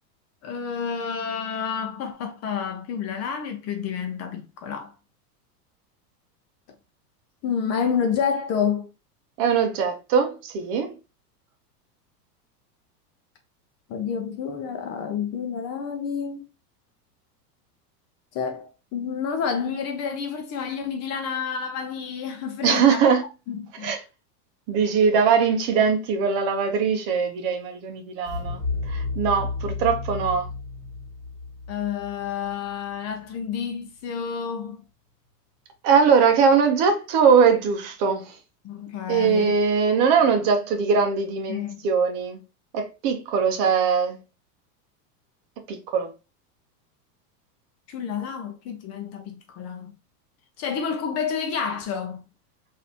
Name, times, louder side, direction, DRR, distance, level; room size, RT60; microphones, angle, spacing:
voice 1, 0.4-4.9 7.4-8.9 13.9-16.5 18.3-23.0 23.5-23.9 31.7-34.8 38.6-39.5 41.5-41.8 47.9-49.9 50.6-52.2, left 7 dB, 30° left, 0.6 m, -29 dB
voice 2, 9.4-10.9 22.6-23.2 23.8-24.0 24.7-28.6 28.9-30.5 35.8-38.4 39.1-42.4 42.7-44.2 45.7-46.1, right 6 dB, 45° right, 0.8 m, -21 dB
sound 1, 28.2-33.1, left 3 dB, 5° left, 1.5 m, -32 dB
3.9 x 2.8 x 2.8 m
supercardioid pair, 125°, 48 cm